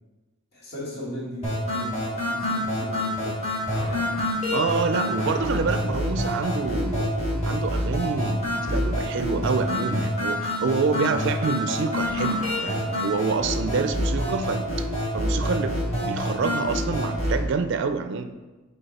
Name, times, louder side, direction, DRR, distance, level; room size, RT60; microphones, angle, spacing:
voice 1, 0.5-3.4, equal, 50° left, -6 dB, 1.7 m, -36 dB
sound 1, 1.4-17.4, left 1 dB, 30° left, 2.0 m, -27 dB
sound 2, 3.6-11.6 12.0-14.3, left 1 dB, 90° left, 1.8 m, -44 dB
voice 2, 4.5-7.1 7.4-14.9 15.1-18.3, right 4 dB, 55° right, 9 dB, 0.4 m, -27 dB
7.8 x 3.6 x 4.1 m, 1.2 s
head